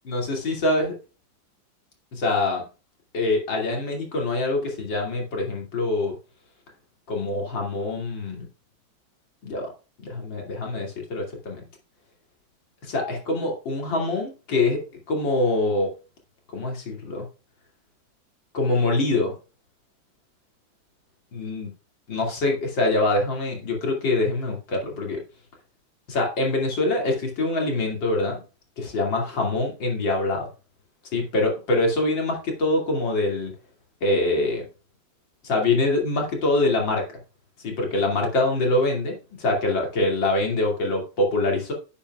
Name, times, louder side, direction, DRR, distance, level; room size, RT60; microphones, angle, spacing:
voice 1, 0.1-0.9 2.1-2.6 3.1-6.1 7.1-8.5 9.4-9.7 10.0-11.6 12.8-14.8 15.1-15.9 16.5-17.3 18.5-19.3 21.3-21.7 22.1-25.2 26.1-28.4 28.8-30.5 31.1-33.5 34.0-34.7 35.4-37.0 37.6-41.7, left 2 dB, 75° left, 0 dB, 3.2 m, -24 dB
10.0 x 8.9 x 2.4 m, 0.33 s
omnidirectional pair, 2.1 m